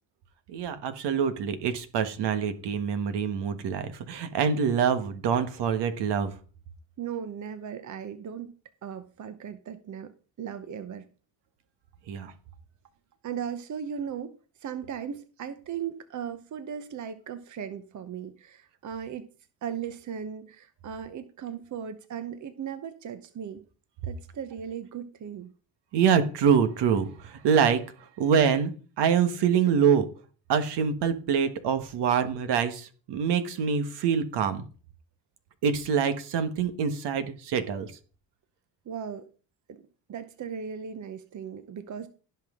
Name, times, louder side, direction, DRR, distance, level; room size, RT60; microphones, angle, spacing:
voice 1, 0.5-6.3 12.1-12.3 25.9-30.1 30.5-34.6 35.6-37.9, right 7 dB, 75° right, 1.4 m, -25 dB
voice 2, 7.0-8.5 8.8-10.1 10.4-11.1 13.2-19.3 19.6-23.6 24.0-25.5 38.9-39.3 39.7-39.8 40.1-42.1, right 8 dB, 45° right, 0.9 m, -37 dB
16.0 x 5.9 x 3.7 m
cardioid pair, 95°, 41 cm